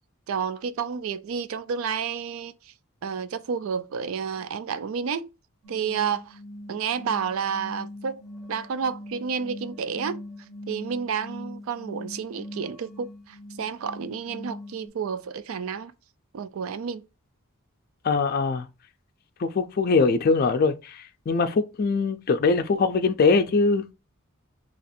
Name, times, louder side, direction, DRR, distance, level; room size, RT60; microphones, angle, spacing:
voice 1, 0.3-2.7 3.0-5.3 5.7-6.4 6.7-8.2 8.5-10.2 10.7-15.9 16.3-17.1, right 6 dB, 70° right, 0.4 m, -30 dB
sound 1, 5.6-14.9, left 1 dB, ahead, 0.7 m, -42 dB
voice 2, 18.0-18.7 19.4-23.9, left 4 dB, 45° left, 0.4 m, -22 dB
2.9 x 2.5 x 4.1 m
head